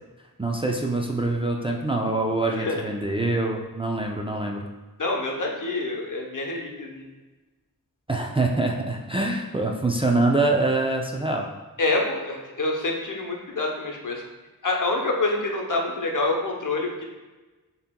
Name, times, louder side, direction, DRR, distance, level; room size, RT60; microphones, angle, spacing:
voice 1, 0.4-4.7 8.1-11.5, right 2 dB, 15° right, 0 dB, 0.4 m, -25 dB
voice 2, 2.4-2.9 5.0-7.1 11.8-14.3 14.6-17.0, left 2 dB, 60° left, 0 dB, 0.8 m, -27 dB
6.9 x 2.9 x 2.2 m, 1.2 s
wide cardioid pair, 50°, 37 cm